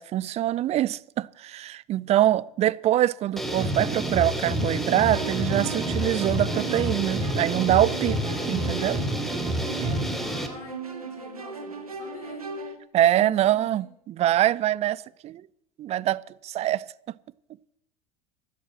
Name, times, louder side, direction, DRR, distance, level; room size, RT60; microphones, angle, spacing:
voice 1, 0.0-8.2 8.5-9.0 12.9-15.4 15.8-16.9, right 13 dB, 35° right, 0.5 m, -24 dB
sound 1, 3.4-10.5, equal, ahead, 2.4 m, -28 dB
sound 2, 5.1-12.7, right 5 dB, 85° right, 1.6 m, -37 dB
voice 2, 10.2-12.5 13.2-13.9, left 6 dB, 80° left, 2.5 m, -46 dB
12.5 x 11.0 x 7.5 m
figure-of-eight pair, 75°, 18 cm